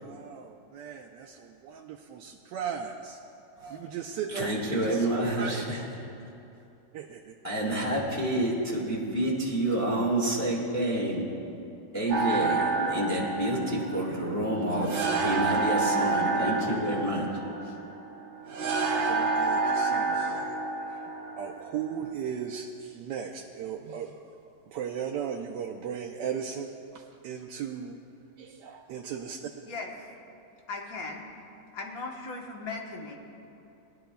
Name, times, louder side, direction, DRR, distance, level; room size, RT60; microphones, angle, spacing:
voice 1, 0.0-3.2 3.7-5.6 6.9-7.4 19.0-21.1 21.4-24.2 24.7-29.5, right 7 dB, 85° right, 2 dB, 1.2 m, -37 dB
voice 2, 4.3-5.8 7.4-11.2 11.9-17.4, right 1 dB, 10° left, -5 dB, 1.5 m, -28 dB
sound 1, 12.1-22.1, right 3 dB, 60° right, 0.8 m, -29 dB
voice 3, 29.7-30.1 30.7-31.3 31.7-33.2, left 3 dB, 60° left, 0 dB, 1.6 m, -38 dB
19.5 x 11.5 x 2.3 m, 2.8 s
omnidirectional pair, 1.8 m